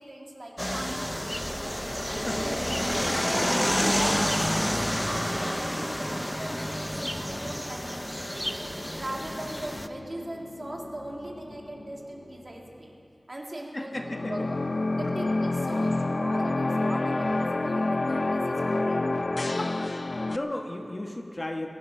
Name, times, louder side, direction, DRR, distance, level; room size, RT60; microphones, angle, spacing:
voice 1, 0.0-1.6 2.4-3.2 3.7-8.6 8.9-13.0 13.3-14.6 14.9-19.1, right 1 dB, 40° right, 0 dB, 2.0 m, -39 dB
sound 1, 0.6-9.9, equal, 5° left, 0.5 m, -29 dB
voice 2, 2.1-2.4 2.9-3.9 13.7-14.5 15.0-15.1 19.4-21.7, left 1 dB, 35° left, 3 dB, 1.2 m, -36 dB
sound 2, 8.3-13.2, left 2 dB, 80° left, 1.2 m, -47 dB
sound 3, 13.9-20.4, left 2 dB, 55° left, 0.5 m, -27 dB
22.5 x 10.5 x 5.6 m, 2.6 s
wide cardioid pair, 75°, 0 cm